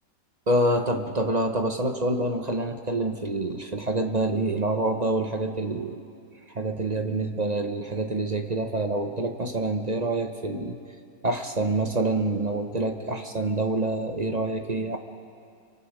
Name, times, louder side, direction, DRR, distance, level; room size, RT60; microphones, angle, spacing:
voice 1, 0.5-6.0 6.5-10.8 11.2-15.0, right 2 dB, 30° right, 5 dB, 0.9 m, -26 dB
29.5 x 25.0 x 4.9 m, 2.5 s
omnidirectional pair, 1.8 m